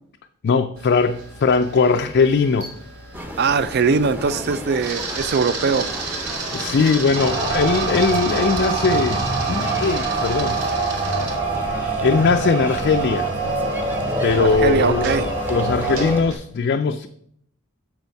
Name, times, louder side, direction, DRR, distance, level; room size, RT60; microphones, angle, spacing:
voice 1, 0.4-2.7 6.3-10.6 11.7-13.3 14.2-17.1, left 4 dB, 45° left, 0.4 m, -20 dB
Camera, 0.8-16.3, right 3 dB, 85° right, 1.7 m, -34 dB
Cracow Old Town, 3.1-16.2, equal, 10° right, 0.7 m, -34 dB
voice 2, 3.4-5.9 14.3-15.3, right 5 dB, 45° right, 0.4 m, -21 dB
sound 1, 7.2-16.2, right 3 dB, 25° right, 1.1 m, -24 dB
7.0 x 6.8 x 4.6 m
head